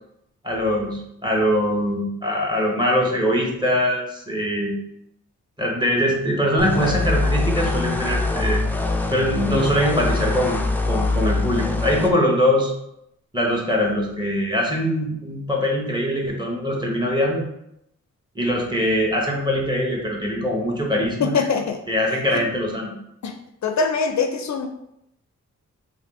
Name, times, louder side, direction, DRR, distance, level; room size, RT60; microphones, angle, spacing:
voice 1, 0.4-4.7 5.6-8.6 9.1-12.7 13.3-17.4 18.3-21.3 21.9-22.9, equal, 15° right, -1 dB, 1.1 m, -22 dB
sound 1, 6.6-12.1, left 3 dB, 5° left, 0.4 m, -23 dB
voice 2, 21.2-21.8 23.2-23.3 23.6-24.7, left 5 dB, 60° left, 4 dB, 0.5 m, -22 dB
3.4 x 2.5 x 3.6 m, 0.79 s
cardioid pair, 50°, 31 cm